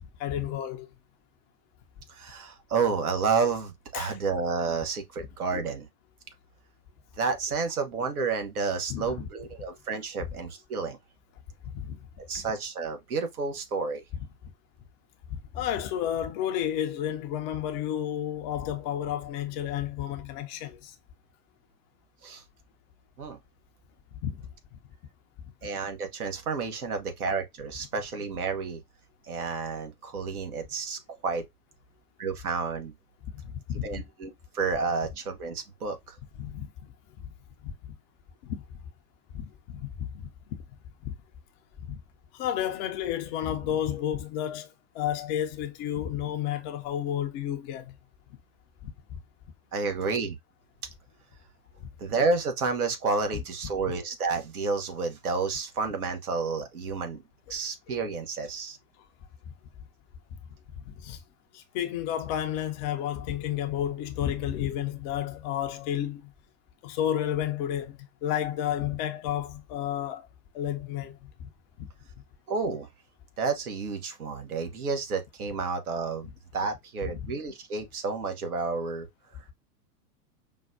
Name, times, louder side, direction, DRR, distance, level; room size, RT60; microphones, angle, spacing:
voice 1, 0.2-0.9 3.9-4.2 8.9-9.2 11.6-12.1 12.3-12.4 15.3-20.9 24.2-24.5 33.4-34.0 36.4-37.3 37.6-37.7 38.4-38.6 39.3-40.6 41.1-41.2 41.9-42.0 42.3-44.7 44.9-47.9 48.8-49.2 53.3-53.4 60.9-61.2 61.5-66.3 66.8-70.3 70.5-71.5 71.8-71.9 77.1-77.3, left 10 dB, 30° left, 0.5 m, -31 dB
voice 2, 2.1-5.9 7.2-11.0 12.3-14.0 22.2-22.4 23.2-23.4 25.6-28.8 29.3-31.4 32.2-32.9 33.8-36.2 49.7-50.4 52.0-57.2 57.5-58.8 72.5-72.9 73.4-79.1, right 4 dB, 70° right, 1.1 m, -30 dB
5.3 x 2.2 x 2.5 m
figure-of-eight pair, 95°, 46 cm